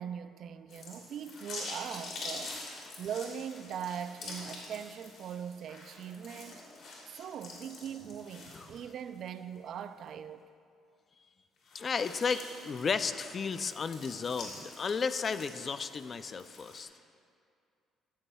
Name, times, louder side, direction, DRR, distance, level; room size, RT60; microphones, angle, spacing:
voice 1, 0.0-2.6 3.0-6.7 7.1-10.4, right 8 dB, 60° right, 0.4 m, -41 dB
sound 1, 0.7-9.3 9.7-9.8 11.6-16.8, left 2 dB, 60° left, 2.9 m, -46 dB
voice 2, 11.7-16.9, left 5 dB, 40° left, 0.4 m, -33 dB
14.0 x 13.0 x 2.3 m
cardioid pair, 105°, 0 cm